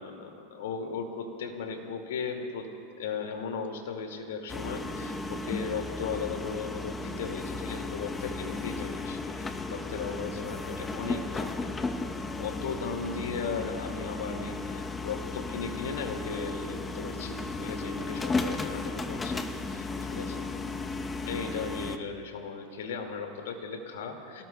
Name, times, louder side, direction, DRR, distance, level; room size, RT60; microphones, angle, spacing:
voice 1, 0.0-2.7 3.0-11.6 12.4-19.4 19.7-20.5 21.2-24.4, left 5 dB, 85° left, 3 dB, 2.1 m, -37 dB
sound 1, 4.5-22.0, left 3 dB, 15° left, 0.8 m, -35 dB
26.5 x 18.5 x 2.3 m, 2.6 s
hypercardioid pair, 115°, 0 cm